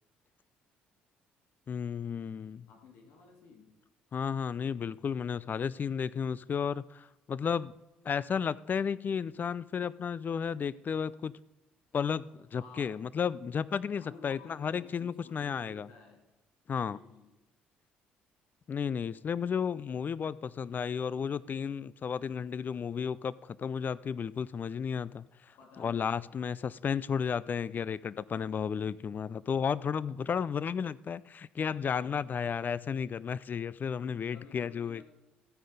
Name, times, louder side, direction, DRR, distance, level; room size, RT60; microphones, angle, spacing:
voice 1, 1.7-2.7 4.1-7.7 8.0-11.3 11.9-15.9 16.7-17.0 18.7-35.0, left 7 dB, 45° left, 20 dB, 0.5 m, -33 dB
voice 2, 2.7-3.7 12.5-13.0 14.0-16.3 16.9-17.3 21.6-21.8 25.6-26.4 31.8-32.3 34.3-35.1, left 4 dB, 70° left, 1 dB, 2.5 m, -55 dB
14.0 x 9.2 x 5.2 m, 1.0 s
hypercardioid pair, 55°, 4 cm